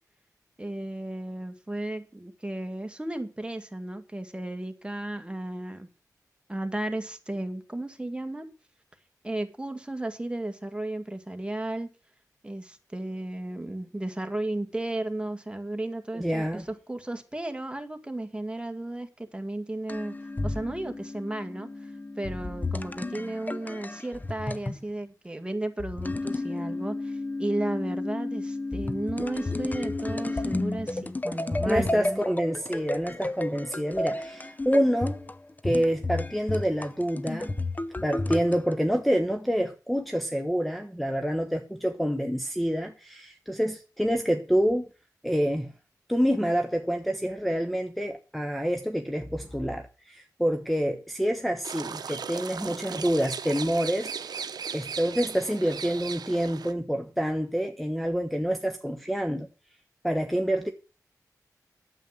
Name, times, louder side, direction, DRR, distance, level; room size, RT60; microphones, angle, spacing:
voice 1, 0.6-5.9 6.5-8.5 9.2-11.9 12.4-32.2, right 1 dB, 15° right, 1.9 m, -34 dB
voice 2, 16.2-16.6 31.7-35.2 35.6-37.5 38.0-44.9 45.2-45.7 46.1-54.4 54.7-59.5 60.0-60.7, equal, ahead, 1.2 m, -27 dB
sound 1, 19.9-24.8 25.8-38.7, left 2 dB, 25° left, 0.8 m, -32 dB
sound 2, 51.6-56.7, right 6 dB, 80° right, 0.8 m, -37 dB
9.1 x 7.6 x 7.7 m
cardioid pair, 50°, 7 cm